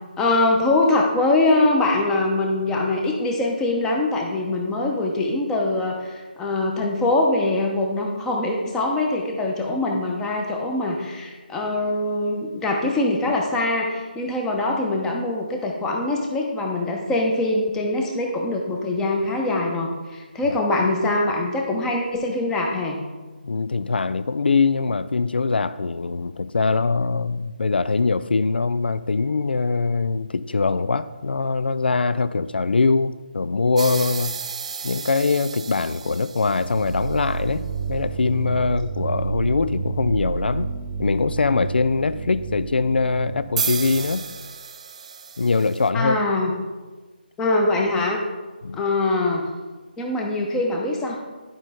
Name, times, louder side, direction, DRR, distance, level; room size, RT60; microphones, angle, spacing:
voice 1, 0.2-23.0 45.9-46.5 47.4-48.2 48.7-49.4 50.0-51.2, left 2 dB, 10° left, 0 dB, 0.9 m, -23 dB
voice 2, 23.4-34.4 34.8-40.7 41.0-44.3 45.4-46.2 48.6-48.8, left 4 dB, 70° left, 14 dB, 0.4 m, -22 dB
sound 1, 33.8-37.2 43.6-45.9, right 6 dB, 40° right, 0.5 m, -32 dB
sound 2, 36.5-44.2, right 5 dB, 15° right, 1.1 m, -30 dB
11.0 x 5.4 x 3.7 m, 1.3 s
figure-of-eight pair, 155°, 6 cm